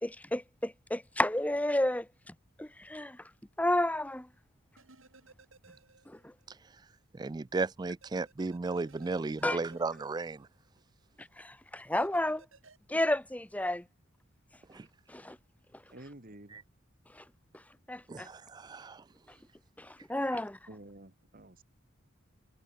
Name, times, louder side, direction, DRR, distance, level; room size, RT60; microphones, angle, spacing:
voice 1, 0.0-3.3 3.6-4.3 6.1-6.3 9.4-9.6 11.2-12.5 12.9-13.8 15.1-15.4 15.7-15.8 17.1-17.2 17.5-17.6 17.9-18.3 19.8-20.6, left 1 dB, 5° left, 1.0 m, -32 dB
sound 1, 4.8-6.5 6.8-6.9 8.0-10.8 12.0-12.8, right 3 dB, 75° right, 4.1 m, -59 dB
voice 2, 6.5-6.8 7.1-10.5 14.7-14.9 16.5-16.6 18.1-19.1, right 3 dB, 20° right, 0.3 m, -35 dB
voice 3, 15.9-16.6 20.7-21.6, right 1 dB, 45° right, 2.4 m, -50 dB
head